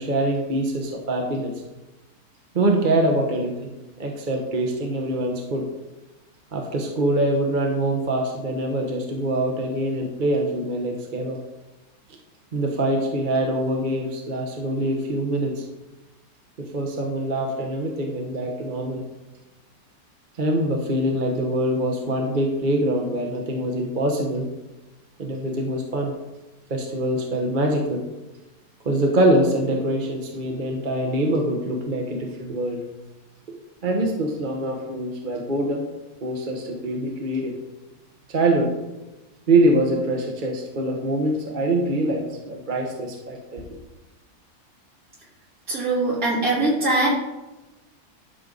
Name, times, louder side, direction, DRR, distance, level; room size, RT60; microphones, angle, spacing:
voice 1, 0.0-1.5 2.5-3.7 4.0-5.6 6.5-11.4 12.5-15.6 16.7-19.0 20.4-24.5 25.2-26.1 26.7-28.0 28.8-32.8 33.8-35.9 36.2-37.5 38.3-38.7 39.5-43.8, right 1 dB, 35° right, 1 dB, 1.2 m, -24 dB
voice 2, 45.7-47.1, right 2 dB, 65° right, -7 dB, 4.2 m, -22 dB
11.5 x 6.5 x 4.0 m, 1.0 s
omnidirectional pair, 1.6 m